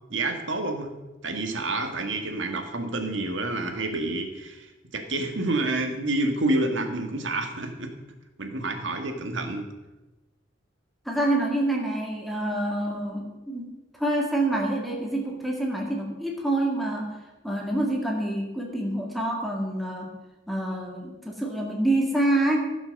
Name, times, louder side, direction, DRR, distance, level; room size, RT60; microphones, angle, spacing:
voice 1, 0.1-0.9 1.2-7.9 8.4-9.7, right 2 dB, 80° right, 5 dB, 1.8 m, -28 dB
voice 2, 11.1-13.7 14.0-17.1 17.4-20.2 20.5-22.6, right 1 dB, ahead, -1 dB, 2.0 m, -27 dB
16.0 x 6.1 x 6.6 m, 1.1 s
head